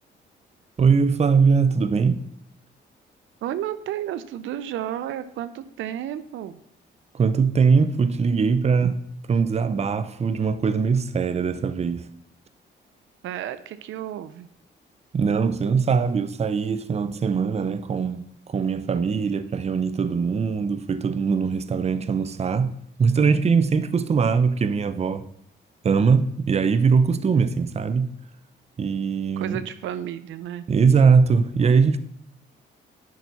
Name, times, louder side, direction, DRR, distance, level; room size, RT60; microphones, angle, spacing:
voice 1, 0.8-2.2 7.1-8.9 9.3-12.1 15.1-22.7 23.0-25.3 25.8-28.1 28.8-29.6 30.7-32.0, right 5 dB, 30° right, 0.6 m, -21 dB
voice 2, 3.4-6.6 8.8-8.9 13.2-14.5 29.4-30.6, right 11 dB, 80° right, 0.5 m, -32 dB
10.5 x 4.0 x 5.8 m
cardioid pair, 90°, 20 cm